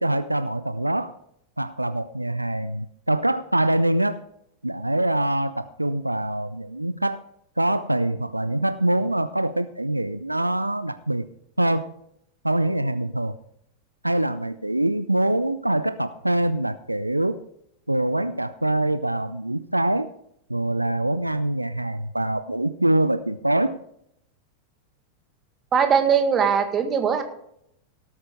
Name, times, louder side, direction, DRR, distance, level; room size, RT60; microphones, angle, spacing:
voice 1, 0.0-1.1 1.6-4.2 4.6-7.2 7.6-11.3 11.6-11.9 12.4-13.4 14.0-17.4 17.9-20.1 20.5-23.8, right 1 dB, 85° right, 14 dB, 0.4 m, -24 dB
voice 2, 25.7-27.2, right 7 dB, 25° right, 7 dB, 1.6 m, -20 dB
17.5 x 8.8 x 3.6 m, 0.73 s
figure-of-eight pair, 90°, 0 cm